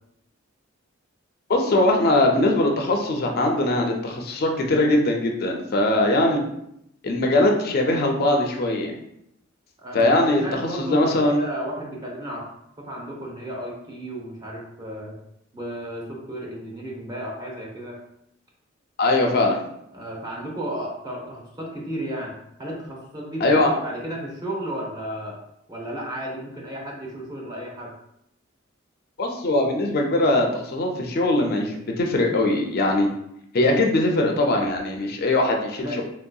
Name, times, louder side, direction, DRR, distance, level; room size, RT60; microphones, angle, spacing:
voice 1, 1.5-6.4 7.0-8.9 9.9-11.4 19.0-19.6 23.4-23.7 29.2-33.1 33.5-36.0, left 2 dB, 50° left, 2 dB, 0.4 m, -21 dB
voice 2, 9.8-15.2 15.5-18.0 19.9-25.4 25.7-27.9 33.6-33.9 35.8-36.0, right 1 dB, 20° right, -2 dB, 0.6 m, -33 dB
3.1 x 2.7 x 2.3 m, 0.77 s
head